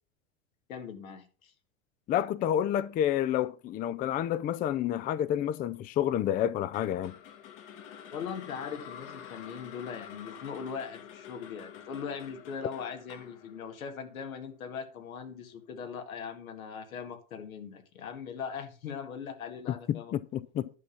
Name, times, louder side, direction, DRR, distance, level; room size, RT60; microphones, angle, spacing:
voice 1, 0.7-1.5 8.1-20.1, left 6 dB, 80° left, 1.9 m, -40 dB
voice 2, 2.1-7.1 19.9-20.7, left 10 dB, 25° left, 0.4 m, -29 dB
sound 1, 6.7-14.9, left 8 dB, 60° left, 1.8 m, -48 dB
11.0 x 5.4 x 5.8 m
hypercardioid pair, 100°, 41 cm